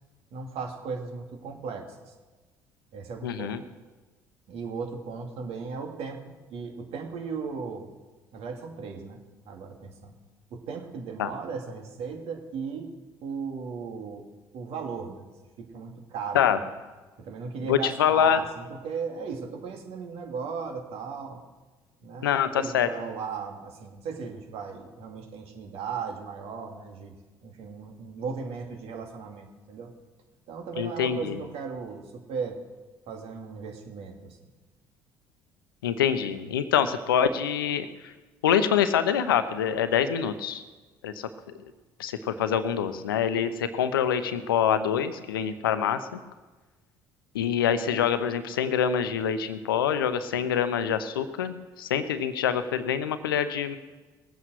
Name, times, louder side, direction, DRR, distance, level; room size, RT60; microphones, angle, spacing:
voice 1, 0.3-2.1 2.9-3.6 4.5-7.9 8.3-9.2 9.5-10.1 10.5-12.9 13.2-14.3 14.5-15.3 15.6-16.6 17.2-21.4 22.0-27.1 27.4-29.9 30.5-32.6 33.1-34.5, right 5 dB, 65° right, 3 dB, 2.5 m, -36 dB
voice 2, 3.2-3.6 11.2-11.3 16.3-16.6 17.6-18.4 22.2-22.9 30.8-31.4 35.8-38.1 38.4-40.6 41.0-41.3 42.0-46.2 47.3-53.8, left 8 dB, 85° left, 11 dB, 0.8 m, -25 dB
19.5 x 8.4 x 6.3 m, 1.3 s
hypercardioid pair, 55°, 11 cm